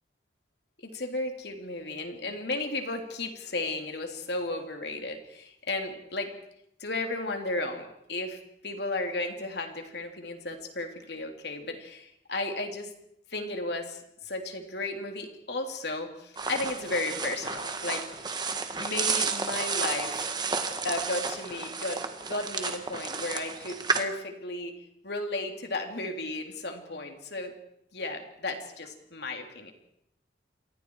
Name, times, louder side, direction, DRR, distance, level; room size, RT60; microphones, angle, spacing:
voice 1, 0.8-6.3 6.8-12.9 13.3-18.3 18.7-20.2 20.8-22.0 22.3-24.7 25.0-27.5 27.9-29.7, left 2 dB, 60° left, 4 dB, 3.2 m, -34 dB
sound 1, 16.4-24.0, right 4 dB, 20° right, 1.5 m, -32 dB
28.5 x 23.5 x 4.8 m, 0.76 s
head